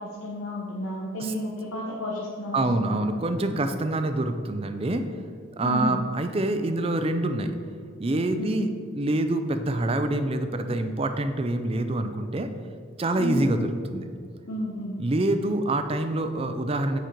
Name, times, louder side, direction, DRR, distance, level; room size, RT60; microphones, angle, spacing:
voice 1, 0.0-2.8 3.1-3.3 5.6-6.0 8.4-8.7 13.2-13.5 14.4-15.0, left 1 dB, 85° left, -3 dB, 1.0 m, -31 dB
voice 2, 2.5-5.0 5.6-7.6 8.0-8.7 8.9-12.5 13.0-13.6 13.9-14.1 15.0-17.0, right 2 dB, 25° right, 8 dB, 0.4 m, -26 dB
7.6 x 5.2 x 4.4 m, 2.4 s
head